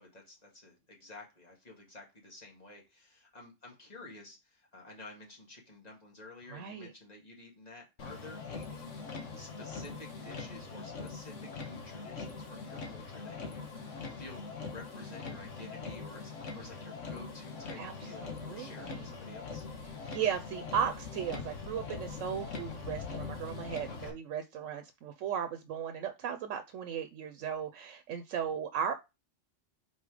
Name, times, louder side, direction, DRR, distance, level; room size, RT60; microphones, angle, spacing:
voice 1, 0.0-19.7 24.0-24.2, left 2 dB, 35° left, -1 dB, 2.1 m, -51 dB
voice 2, 6.5-6.9 17.8-17.9 18.2-19.1 20.0-28.9, right 8 dB, 90° right, 7 dB, 1.0 m, -36 dB
Motor vehicle (road), 8.0-24.1, left 4 dB, 80° left, 1.5 m, -42 dB
5.5 x 4.3 x 4.8 m, 0.26 s
omnidirectional pair, 1.3 m